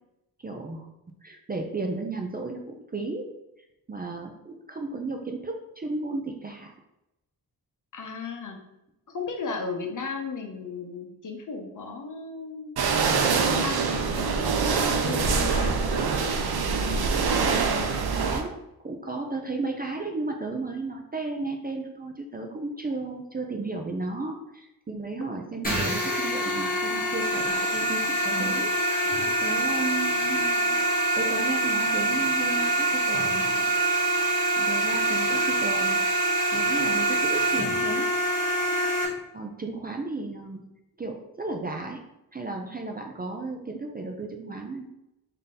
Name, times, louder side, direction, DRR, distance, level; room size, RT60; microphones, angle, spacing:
voice 1, 0.4-0.9 1.2-3.3 3.9-6.7 17.4-17.7 18.1-18.6 18.8-28.7 29.4-30.8 31.2-33.5 34.6-36.0 36.5-38.1 39.3-40.7 41.0-42.0 42.3-44.9, right 3 dB, 25° right, 2 dB, 0.4 m, -34 dB
voice 2, 7.9-8.6 9.1-12.7 13.3-15.7 16.6-16.9 17.4-18.1, left 4 dB, 55° left, 3 dB, 0.7 m, -36 dB
sound 1, 12.8-18.4, right 5 dB, 75° right, 0.6 m, -24 dB
sound 2, 25.6-39.1, right 1 dB, 20° left, 1.3 m, -25 dB
3.8 x 2.7 x 3.7 m, 0.89 s
wide cardioid pair, 135°, 38 cm